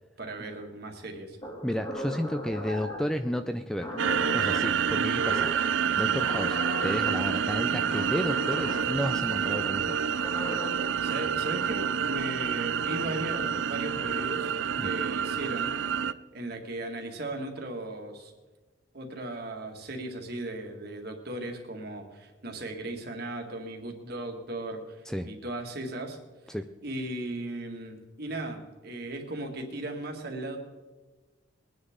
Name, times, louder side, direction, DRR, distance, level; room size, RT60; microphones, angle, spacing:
voice 1, 0.2-1.4 11.0-14.5 14.8-15.7 16.3-18.3 18.9-26.2 26.5-26.6 26.8-30.6, right 2 dB, 55° right, 2 dB, 1.9 m, -37 dB
sound 1, 1.4-3.1 3.8-4.7 5.3-5.7 6.2-7.1 7.9-8.8 9.9-10.7, left 1 dB, 25° left, 2.0 m, -37 dB
voice 2, 1.6-3.9 4.3-10.0 14.8-14.9 25.1-25.3 26.5-26.7, equal, 5° left, 8 dB, 0.4 m, -32 dB
sound 2, 4.0-16.1, right 7 dB, 70° right, 0.4 m, -28 dB
22.0 x 9.8 x 3.7 m, 1.3 s
head